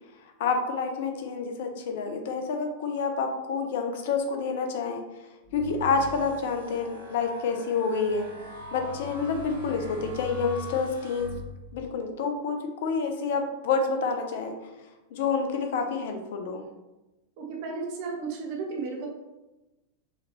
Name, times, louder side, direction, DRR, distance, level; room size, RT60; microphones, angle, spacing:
voice 1, 0.2-5.0 5.5-8.3 8.7-11.3 11.7-14.5 15.1-16.7, left 4 dB, 55° left, 4 dB, 0.6 m, -28 dB
sound 1, 5.4-11.9, left 4 dB, 85° right, 1.2 m, -41 dB
voice 2, 17.4-19.1, right 4 dB, 45° right, 0 dB, 1.0 m, -34 dB
5.0 x 3.0 x 2.9 m, 1.0 s
figure-of-eight pair, 90°, 0 cm